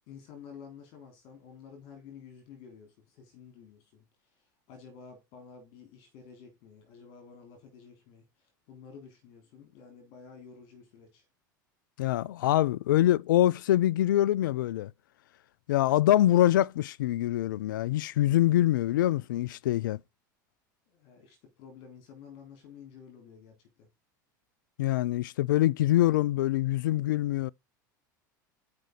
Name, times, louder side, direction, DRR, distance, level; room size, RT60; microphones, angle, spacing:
voice 1, 0.1-11.3 20.9-23.9, left 6 dB, 60° left, 3.4 m, -51 dB
voice 2, 12.0-14.9 15.7-20.0 24.8-27.5, left 14 dB, 75° left, 0.4 m, -24 dB
7.9 x 5.3 x 3.9 m
hypercardioid pair, 85°, 11 cm